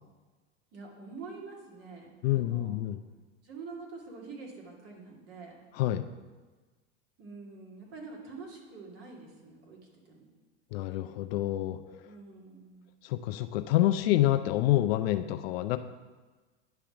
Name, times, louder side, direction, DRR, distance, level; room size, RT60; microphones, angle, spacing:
voice 1, 0.7-2.8 3.4-5.6 7.2-9.8 10.1-10.2 12.0-12.9, right 4 dB, 45° right, -2 dB, 2.3 m, -46 dB
voice 2, 2.2-3.0 5.7-6.1 10.7-11.8 13.0-15.8, left 14 dB, 55° left, 10 dB, 0.5 m, -27 dB
10.5 x 3.5 x 5.8 m, 1.3 s
hypercardioid pair, 115°, 35 cm